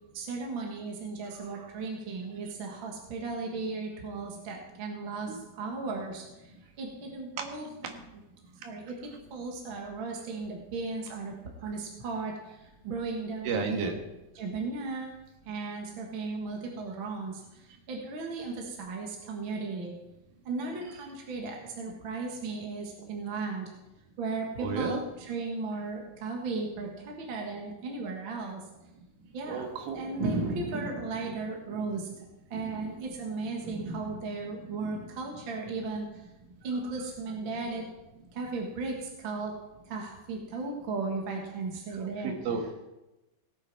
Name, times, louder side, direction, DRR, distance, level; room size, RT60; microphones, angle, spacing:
voice 1, 0.1-7.7 8.6-11.3 11.6-13.9 14.3-15.1 15.4-19.9 20.4-23.7 24.2-28.6 29.3-32.2 32.5-37.9 38.3-39.5 39.9-42.3, right 3 dB, 50° right, 0 dB, 1.6 m, -36 dB
voice 2, 13.4-13.9 24.6-25.0 29.5-30.0 41.9-42.7, right 5 dB, 80° right, 4 dB, 3.3 m, -32 dB
17.5 x 8.6 x 4.6 m, 0.97 s
omnidirectional pair, 4.2 m